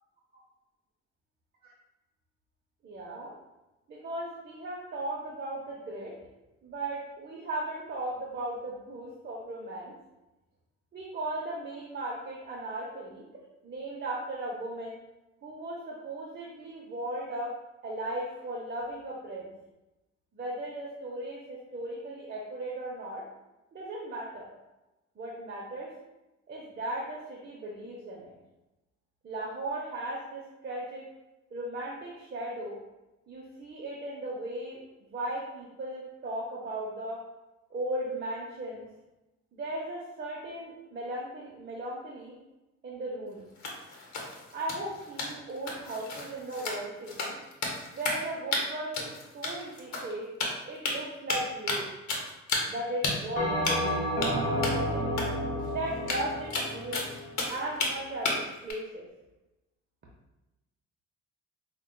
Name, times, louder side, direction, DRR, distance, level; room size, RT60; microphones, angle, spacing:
voice 1, 2.8-3.3 3.9-6.2 6.6-10.0 10.9-13.3 13.6-15.0 15.4-17.5 17.8-19.5 20.3-23.2 23.7-24.5 25.2-25.9 26.5-28.3 29.2-31.1 31.5-32.8 33.3-37.2 37.7-38.9 39.5-42.3 42.8-43.4 44.5-47.4 47.9-50.3 50.7-51.9 52.7-54.0 54.5-55.3 55.7-57.1 57.5-59.1, right 1 dB, 35° right, -4 dB, 0.6 m, -37 dB
sound 1, 43.6-48.3 48.5-48.6 48.9-50.1 50.4-51.0 51.3-51.8 52.1-52.8 53.0-53.1 53.7-53.9 54.2-54.3 54.6-54.8 55.2-55.3 55.6-55.7 55.9-57.9 58.3-58.7, left 3 dB, 65° left, 0.9 m, -32 dB
Bell, 53.4-58.0, equal, 25° left, 0.9 m, -31 dB
4.9 x 2.3 x 2.2 m, 1.0 s
cardioid pair, 90°, 30 cm